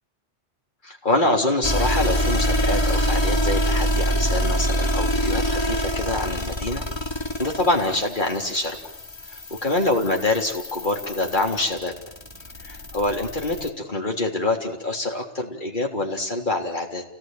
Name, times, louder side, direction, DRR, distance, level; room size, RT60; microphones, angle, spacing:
voice 1, 0.8-6.8 7.4-8.8 9.6-11.9 12.6-17.0, left 2 dB, 45° left, 1 dB, 3.8 m, -25 dB
sound 1, 1.6-13.7, equal, 25° left, 2.2 m, -25 dB
28.5 x 18.5 x 9.2 m, 0.80 s
omnidirectional pair, 1.1 m